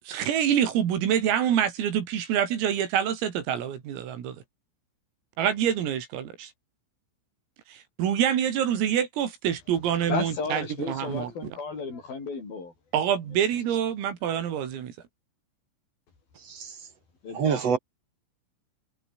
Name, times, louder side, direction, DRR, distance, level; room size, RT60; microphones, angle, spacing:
voice 1, 0.0-4.4 5.4-6.5 7.7-11.3 12.9-14.9, right 9 dB, 85° right, 5.9 m, -26 dB
voice 2, 10.1-12.7 13.3-13.4 17.2-17.8, left 4 dB, 45° left, 8.4 m, -34 dB
voice 3, 17.3-17.8, right 6 dB, 45° right, 2.4 m, -25 dB
omnidirectional pair, 5.9 m